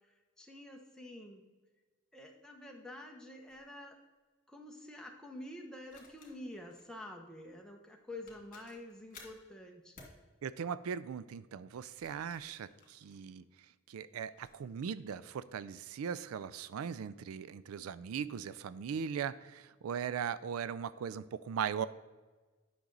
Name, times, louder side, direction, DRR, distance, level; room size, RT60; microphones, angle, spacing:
voice 1, 0.4-1.5 2.1-4.0 4.5-9.9, left 1 dB, 5° left, 1 dB, 1.0 m, -48 dB
sound 1, 3.5-3.7 5.8-6.9 7.9-8.0 8.3-9.4 9.9-10.2 11.7-13.6 14.2-14.6, left 3 dB, 40° left, 2.1 m, -58 dB
voice 2, 10.4-13.4 13.9-21.9, right 7 dB, 90° right, 16 dB, 0.4 m, -39 dB
10.0 x 6.1 x 3.9 m, 1.3 s
head